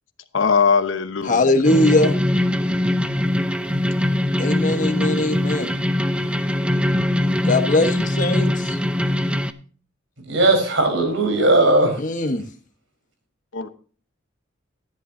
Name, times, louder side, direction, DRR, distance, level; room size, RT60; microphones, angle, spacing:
voice 1, 0.3-1.6 13.5-13.7, left 5 dB, 90° left, 8 dB, 1.1 m, -20 dB
voice 2, 1.2-2.2 4.4-5.8 7.4-8.8 12.0-12.4, left 2 dB, 45° left, 6 dB, 1.5 m, -20 dB
sound 1, 1.6-9.5, left 1 dB, 5° right, 0.8 m, -22 dB
voice 3, 10.3-12.0, right 2 dB, 75° right, 5 dB, 4.7 m, -17 dB
14.5 x 10.5 x 2.8 m, 0.41 s
head